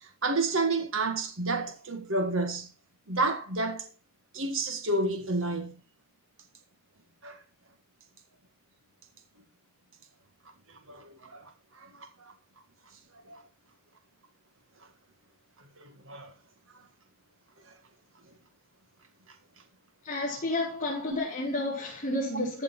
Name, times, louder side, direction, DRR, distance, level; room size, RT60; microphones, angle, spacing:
voice 1, 0.0-2.7 3.1-3.9 4.3-5.7 7.2-7.4 10.9-12.3 13.3-13.4 15.8-16.3, right 2 dB, 60° right, 1.9 m, -30 dB
voice 2, 20.0-22.6, left 1 dB, 30° left, 5.0 m, -31 dB
15.0 x 6.8 x 4.4 m
head